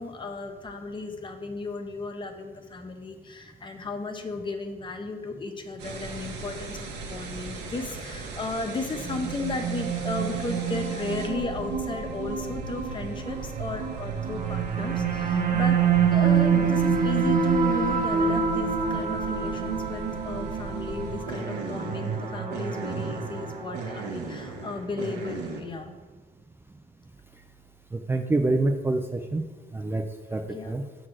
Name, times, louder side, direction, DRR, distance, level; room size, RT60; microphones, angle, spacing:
voice 1, 0.0-15.8 16.1-25.9 30.4-30.7, left 3 dB, 30° left, 6 dB, 0.8 m, -35 dB
sound 1, 5.8-25.6, right 3 dB, 85° right, 1.4 m, -38 dB
sound 2, 9.0-24.3, right 6 dB, 55° right, 0.8 m, -27 dB
voice 2, 27.9-29.5 29.7-30.0 30.3-30.8, right 2 dB, 15° right, 4 dB, 0.4 m, -26 dB
6.3 x 4.0 x 6.1 m, 1.3 s
cardioid pair, 110°, 17 cm